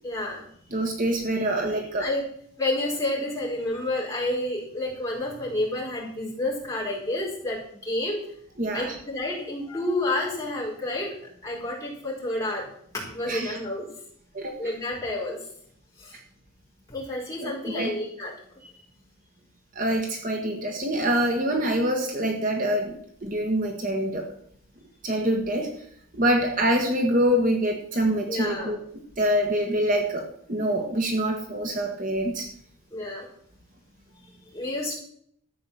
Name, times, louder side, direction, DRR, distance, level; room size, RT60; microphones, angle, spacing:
voice 1, 0.0-0.4 2.0-2.2 2.6-8.2 8.7-11.1 11.4-12.6 13.1-13.9 14.6-15.4 16.0-16.2 16.9-18.3 28.3-28.7 32.9-33.3 34.5-34.9, left 1 dB, 15° left, -5 dB, 4.7 m, -29 dB
voice 2, 0.7-2.1 8.6-8.9 13.3-13.6 14.3-14.6 17.4-17.9 19.7-24.3 25.0-25.7 26.1-28.8 29.2-32.5, right 1 dB, 40° right, 2 dB, 1.6 m, -25 dB
13.5 x 6.9 x 7.3 m, 0.66 s
head